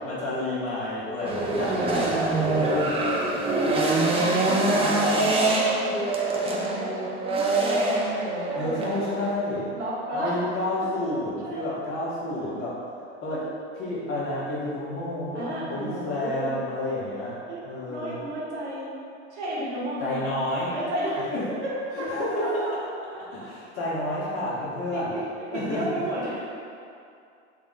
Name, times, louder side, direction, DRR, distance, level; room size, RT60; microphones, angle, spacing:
voice 1, 0.0-3.8 4.3-4.8 8.5-9.7 10.1-12.9 13.2-13.5 13.8-18.2 20.0-20.8 21.3-21.4 22.0-22.6 23.3-25.2 25.5-26.0, left 1 dB, 40° left, -7 dB, 1.3 m, -30 dB
voice 2, 1.2-3.0 3.6-4.0 4.4-6.1 6.4-7.0 7.2-8.9 9.7-10.4 11.4-11.7 12.3-12.6 13.3-13.4 14.1-14.2 15.3-16.5 17.5-17.6 17.9-18.9 19.3-20.2 20.7-21.3 21.6-22.2 23.4-23.5 24.9-26.5, right 1 dB, 80° right, -7 dB, 1.2 m, -33 dB
sound 1, 1.3-9.3, right 2 dB, 15° right, 0.4 m, -24 dB
3.5 x 2.0 x 3.9 m, 2.5 s
hypercardioid pair, 90°, 35 cm